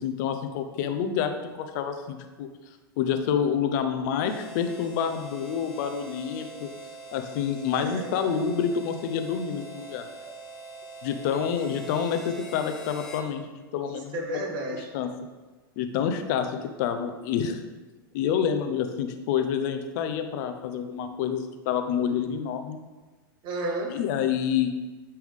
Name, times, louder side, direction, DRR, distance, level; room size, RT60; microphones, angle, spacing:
voice 1, 0.0-2.5 3.0-6.7 7.1-10.0 11.0-14.2 14.9-15.1 15.8-17.6 18.1-22.8 23.9-24.7, left 8 dB, 50° left, 7 dB, 0.7 m, -28 dB
Harmonica, 4.2-13.3, right 2 dB, 5° left, 0.7 m, -43 dB
voice 2, 7.8-8.3 10.2-10.3 13.9-14.9 23.4-23.9, right 1 dB, 40° right, 1 dB, 1.3 m, -33 dB
9.3 x 3.5 x 3.6 m, 1.3 s
hypercardioid pair, 135°, 12 cm